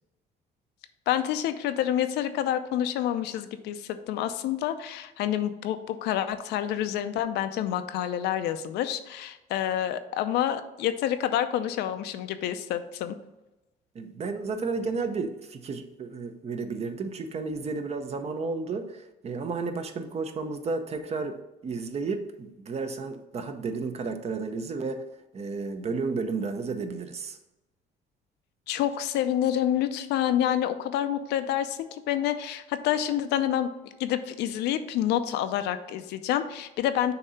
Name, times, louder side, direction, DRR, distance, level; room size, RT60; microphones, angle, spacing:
voice 1, 1.1-13.1 28.7-33.7 34.0-37.1, left 11 dB, 85° left, 10 dB, 0.5 m, -28 dB
voice 2, 13.9-21.4 21.6-25.0 25.3-27.4, right 4 dB, 40° right, 7 dB, 0.7 m, -32 dB
6.6 x 2.8 x 5.5 m, 1.0 s
cardioid pair, 110°, 17 cm